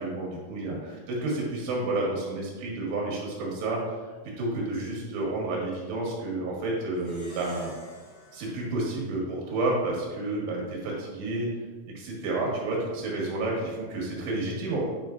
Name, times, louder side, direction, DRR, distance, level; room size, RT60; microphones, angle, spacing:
voice 1, 0.0-3.8 4.4-7.7 8.3-11.5 12.0-14.9, right 2 dB, 90° right, -3 dB, 3.8 m, -30 dB
Plucked string instrument, 6.9-9.7, left 1 dB, 45° left, 1.0 m, -52 dB
9.4 x 5.1 x 2.5 m, 1.4 s
omnidirectional pair, 4.9 m